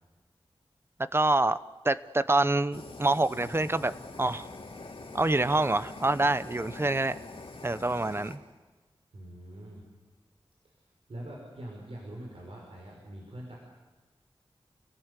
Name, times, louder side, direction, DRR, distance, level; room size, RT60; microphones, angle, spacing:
voice 1, 1.1-1.6 1.8-4.5 5.1-7.2 7.6-8.4, right 2 dB, 25° right, 14 dB, 0.8 m, -26 dB
Fire, 2.7-8.4, left 3 dB, 70° left, 3.3 m, -44 dB
voice 2, 9.1-9.9 10.6-10.7 11.1-13.6, right 1 dB, 70° right, -2 dB, 5.7 m, -43 dB
29.5 x 18.0 x 8.3 m, 1.3 s
wide cardioid pair, 70°, 10 cm